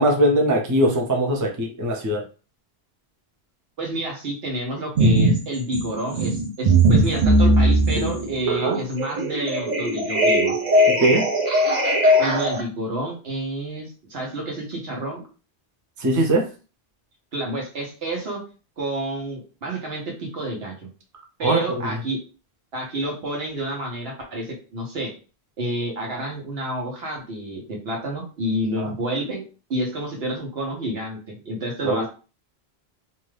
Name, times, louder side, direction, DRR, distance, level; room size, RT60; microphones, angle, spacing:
voice 1, 0.0-2.2 8.5-8.8 11.0-11.2 16.0-16.4 21.4-22.0 28.8-28.9 31.8-32.1, right 1 dB, 25° right, 1 dB, 0.4 m, -21 dB
voice 2, 3.8-10.5 12.2-15.3 17.3-18.4 18.8-20.7 21.4-22.2 22.7-25.1 25.6-29.4 29.7-32.1, right 1 dB, 70° right, -1 dB, 1.2 m, -29 dB
sound 1, 4.9-5.4 5.7-12.6, right 1 dB, 45° right, 0.8 m, -19 dB
2.7 x 2.3 x 3.2 m, 0.35 s
omnidirectional pair, 1.1 m